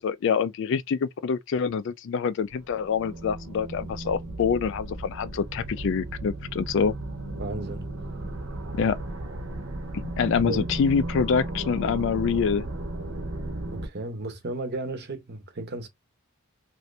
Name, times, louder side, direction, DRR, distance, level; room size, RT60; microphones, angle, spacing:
voice 1, 0.0-6.9 8.7-9.0 9.9-12.7, left 6 dB, 60° left, 0.3 m, -26 dB
sound 1, 2.5-13.9, right 2 dB, 75° right, 0.9 m, -35 dB
voice 2, 7.4-7.9 10.4-10.7 13.7-15.9, right 2 dB, 50° right, 0.8 m, -34 dB
2.8 x 2.5 x 3.2 m
head